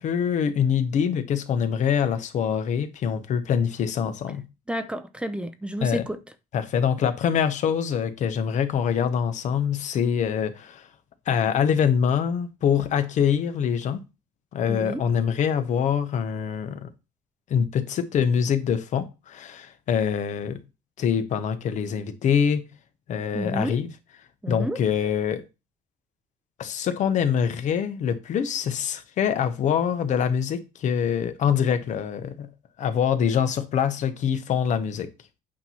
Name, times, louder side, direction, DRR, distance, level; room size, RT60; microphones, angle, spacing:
voice 1, 0.0-4.4 5.8-6.0 6.5-10.9 11.3-14.0 14.5-16.9 17.5-20.6 21.0-22.7 23.1-23.9 24.5-25.4 26.6-32.5 32.8-35.1, left 7 dB, 55° left, 0.9 m, -24 dB
voice 2, 4.7-6.2 14.7-15.0 23.3-23.8 24.4-24.8, right 1 dB, 5° right, 0.6 m, -30 dB
8.7 x 2.9 x 5.7 m
cardioid pair, 120°, 15 cm